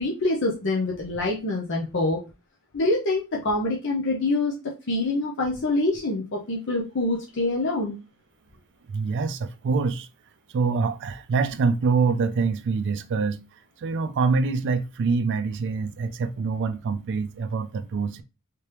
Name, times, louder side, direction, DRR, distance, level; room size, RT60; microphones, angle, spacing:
voice 1, 0.0-2.2 2.7-4.5 4.9-8.0, left 2 dB, 55° left, 0.7 m, -25 dB
voice 2, 8.9-10.1 10.5-13.4 13.8-18.2, right 4 dB, 55° right, 0.3 m, -25 dB
3.3 x 3.3 x 2.9 m
head